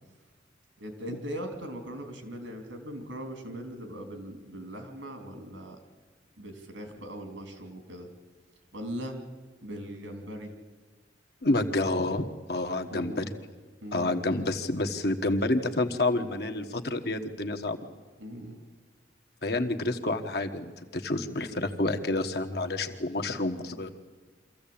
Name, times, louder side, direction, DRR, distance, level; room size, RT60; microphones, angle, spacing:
voice 1, 0.8-5.8 6.4-8.1 8.7-9.2 9.6-10.5 12.9-13.3 13.8-14.2 18.2-18.6, equal, 90° right, 6 dB, 3.4 m, -40 dB
voice 2, 11.4-13.3 13.9-17.8 19.4-23.9, left 2 dB, 55° left, 5 dB, 1.4 m, -29 dB
25.0 x 15.0 x 8.8 m, 1.4 s
head